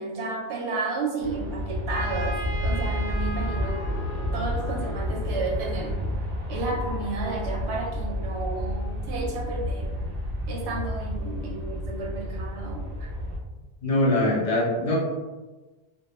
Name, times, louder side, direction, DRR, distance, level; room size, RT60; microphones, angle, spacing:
voice 1, 0.0-3.9 4.3-6.0 6.5-10.0 10.5-13.1, right 3 dB, 90° right, -1 dB, 0.9 m, -32 dB
Aircraft, 1.2-13.4, equal, 60° right, 0.6 m, -30 dB
Trumpet, 1.9-5.6, equal, 15° right, 0.6 m, -38 dB
voice 2, 13.8-15.0, left 1 dB, 40° left, -4 dB, 0.6 m, -22 dB
2.2 x 2.1 x 3.0 m, 1.2 s
omnidirectional pair, 1.1 m